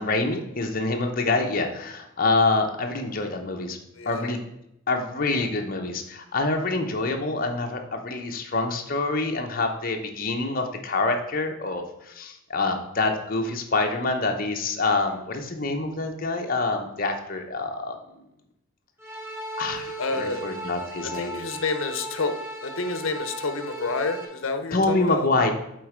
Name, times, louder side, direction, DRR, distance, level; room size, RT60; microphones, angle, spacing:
voice 1, 0.0-3.8 4.1-4.4 4.9-18.0 19.6-21.4 24.7-25.5, left 3 dB, 45° left, 3 dB, 0.9 m, -26 dB
sound 1, 19.0-24.2, right 1 dB, 10° right, 1.1 m, -36 dB
voice 2, 20.0-20.4 21.0-22.3 22.6-25.3, left 3 dB, 70° left, 8 dB, 0.8 m, -29 dB
7.7 x 4.0 x 5.0 m, 0.81 s
head